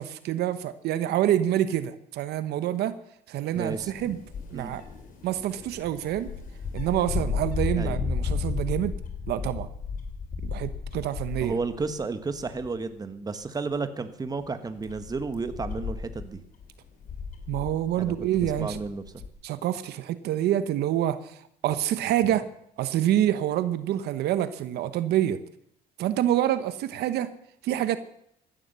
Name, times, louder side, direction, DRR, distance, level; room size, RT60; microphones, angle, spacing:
voice 1, 0.0-3.0 3.3-4.2 4.5-4.8 5.2-6.3 6.7-9.0 9.3-9.7 10.4-11.6 17.5-18.8 19.4-22.5 22.8-25.4 26.0-27.3 27.6-28.0, right 12 dB, 75° right, 12 dB, 1.0 m, -27 dB
sound 1, 3.5-12.0 12.4-12.8 13.3-13.4 14.3-19.3, left 5 dB, 55° left, 3.4 m, -34 dB
voice 2, 3.5-4.2 4.5-4.8 7.8-8.0 11.4-16.4 17.9-18.2 18.4-19.2, right 4 dB, 20° right, 10 dB, 1.3 m, -32 dB
15.5 x 11.5 x 6.8 m, 0.72 s
cardioid pair, 110°, 17 cm